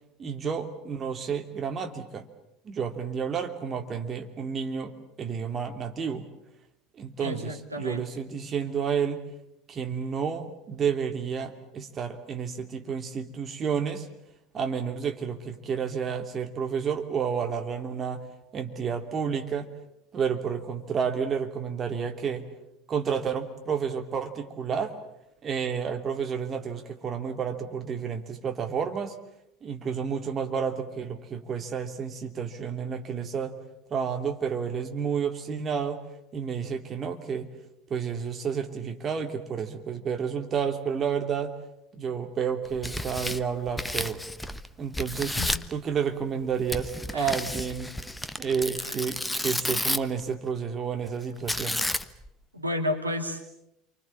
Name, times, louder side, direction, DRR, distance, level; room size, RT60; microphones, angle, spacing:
voice 1, 0.2-2.3 2.6-6.3 7.0-9.2 9.7-14.1 14.5-18.2 18.5-19.7 20.1-22.5 22.9-24.9 25.4-29.2 29.6-33.5 33.9-36.0 36.3-37.5 37.9-41.6 41.9-44.2 44.8-45.4 45.7-47.9 48.4-51.8, right 6 dB, 35° right, 5 dB, 2.8 m, -30 dB
voice 2, 7.2-8.0 45.4-45.5 47.1-47.3 48.8-49.0 52.5-53.4, left 1 dB, 90° right, 4 dB, 2.1 m, -31 dB
Tearing, 42.6-44.7 44.9-45.7 46.7-50.2 51.5-52.3, left 1 dB, 5° left, 1.1 m, -31 dB
29.5 x 25.0 x 7.2 m, 0.82 s
figure-of-eight pair, 70°, 0 cm